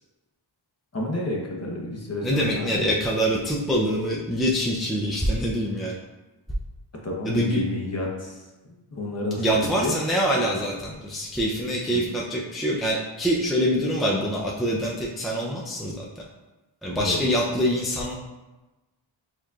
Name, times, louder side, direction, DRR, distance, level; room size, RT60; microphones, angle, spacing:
voice 1, 0.9-2.9 7.0-9.9 11.9-12.2 16.9-17.2, left 1 dB, 30° left, -2 dB, 1.0 m, -31 dB
voice 2, 2.2-6.0 7.2-7.6 9.4-16.1 16.8-18.1, equal, ahead, -4 dB, 0.5 m, -25 dB
6.6 x 3.0 x 2.4 m, 1.1 s
wide cardioid pair, 75°, 49 cm